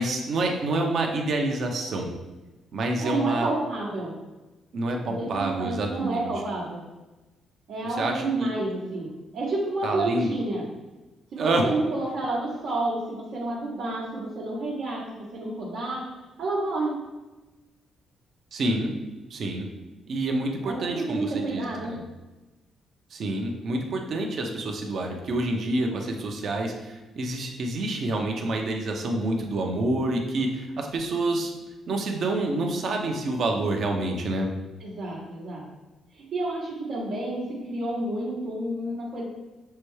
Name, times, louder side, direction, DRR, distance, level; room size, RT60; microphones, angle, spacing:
voice 1, 0.0-2.1 2.7-3.5 4.7-6.3 8.0-8.5 9.8-10.3 11.4-11.6 18.5-18.9 19.3-19.7 20.1-22.0 23.1-31.5 31.9-34.5, right 2 dB, 60° right, 2 dB, 0.7 m, -27 dB
voice 2, 3.0-4.1 5.0-6.8 7.7-10.6 11.3-16.0 16.4-17.0 20.6-21.9 34.8-35.6 36.1-39.3, right 2 dB, 80° right, -8 dB, 1.1 m, -30 dB
6.6 x 2.2 x 3.2 m, 1.1 s
cardioid pair, 90°, 0 cm